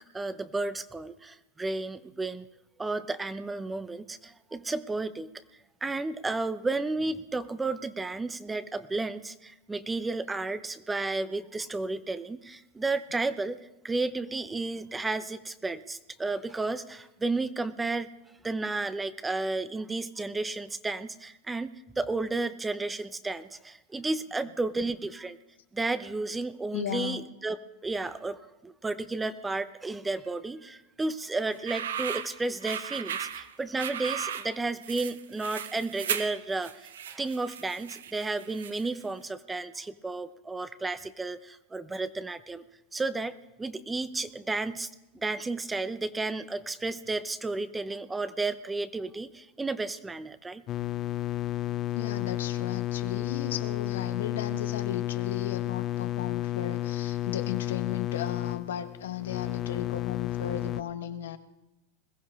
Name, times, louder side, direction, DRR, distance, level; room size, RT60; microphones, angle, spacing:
voice 1, 0.1-2.5 2.8-5.3 5.8-13.6 13.8-18.1 18.4-21.7 22.0-25.4 25.7-27.6 27.8-28.4 28.6-42.6 42.9-44.9 45.1-50.6, right 3 dB, 10° right, 13 dB, 0.8 m, -32 dB
voice 2, 26.7-27.2 51.9-61.4, left 10 dB, 85° left, 9 dB, 1.1 m, -35 dB
sound 1, 31.5-39.0, right 8 dB, 90° right, 0.8 m, -36 dB
sound 2, 50.7-60.8, left 14 dB, 35° left, 0.6 m, -32 dB
21.5 x 15.0 x 3.6 m, 0.98 s
hypercardioid pair, 120°, 0 cm